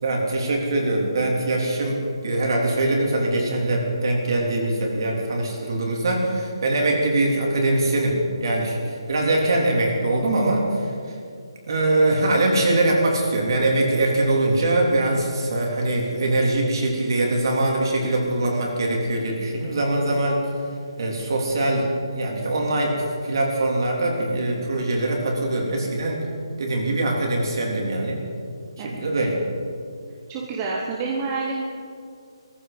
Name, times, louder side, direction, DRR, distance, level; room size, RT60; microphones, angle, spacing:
voice 1, 0.0-10.9 11.7-20.4 21.0-23.0 23.2-26.2 26.6-28.2 28.8-29.3, right 2 dB, 50° right, 0 dB, 3.5 m, -22 dB
voice 2, 30.3-31.6, right 4 dB, 20° right, -2 dB, 1.2 m, -28 dB
17.5 x 14.5 x 5.3 m, 2.3 s
hypercardioid pair, 170°, 3 cm